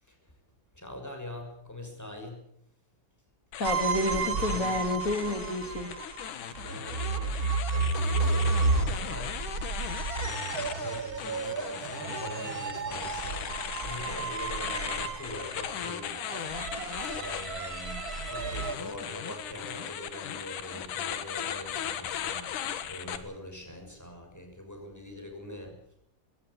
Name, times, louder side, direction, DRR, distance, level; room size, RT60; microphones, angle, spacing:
voice 1, 0.7-2.4 4.3-4.8 6.6-9.5 10.1-16.2 17.0-22.5 22.9-25.8, left 1 dB, 5° left, 3 dB, 6.0 m, -43 dB
sound 1, 3.5-23.2, left 9 dB, 75° left, 2.9 m, -38 dB
voice 2, 3.6-5.9, left 2 dB, 30° left, 7 dB, 2.1 m, -30 dB
sound 2, 3.6-18.8, right 4 dB, 75° right, 0.8 m, -32 dB
21.0 x 17.5 x 8.4 m, 0.74 s
omnidirectional pair, 3.7 m